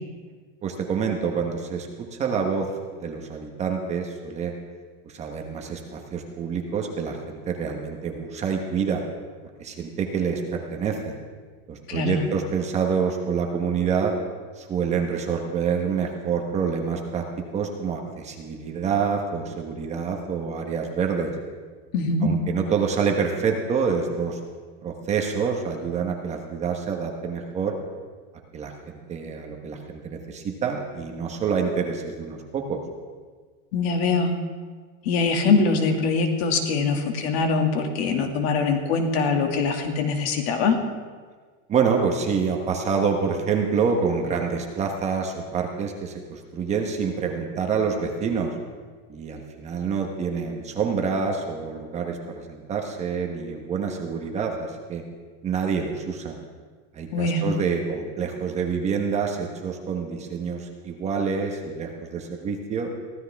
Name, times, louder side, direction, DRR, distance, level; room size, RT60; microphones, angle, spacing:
voice 1, 0.6-2.7 3.0-4.5 5.0-9.0 9.6-11.1 11.7-14.1 14.6-17.3 17.5-21.3 22.2-24.4 24.8-27.8 28.5-32.8 41.7-48.5 49.1-55.0 55.4-56.4 56.9-62.9, right 6 dB, 20° right, 2 dB, 1.1 m, -27 dB
voice 2, 11.9-12.2 21.9-22.3 33.7-34.3 35.0-40.8 57.1-57.4, left 4 dB, 60° left, 4 dB, 2.2 m, -23 dB
23.5 x 15.5 x 3.5 m, 1.5 s
supercardioid pair, 180°, 36 cm